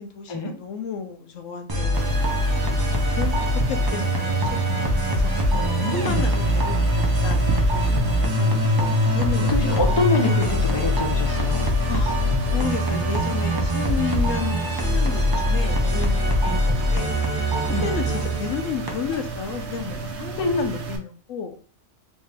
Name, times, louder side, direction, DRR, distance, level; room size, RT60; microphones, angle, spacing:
voice 1, 0.0-5.6 5.9-9.8 11.9-21.6, left 7 dB, 70° left, 6 dB, 0.9 m, -33 dB
sound 1, 1.7-19.1, equal, 40° right, 0.3 m, -22 dB
sound 2, 1.9-21.0, right 4 dB, 60° right, 0.9 m, -33 dB
voice 2, 5.5-6.3 9.4-11.6 16.4-16.6 17.7-17.8 20.4-20.7, left 2 dB, 30° left, 1 dB, 0.5 m, -26 dB
3.2 x 2.7 x 3.3 m, 0.40 s
omnidirectional pair, 1.4 m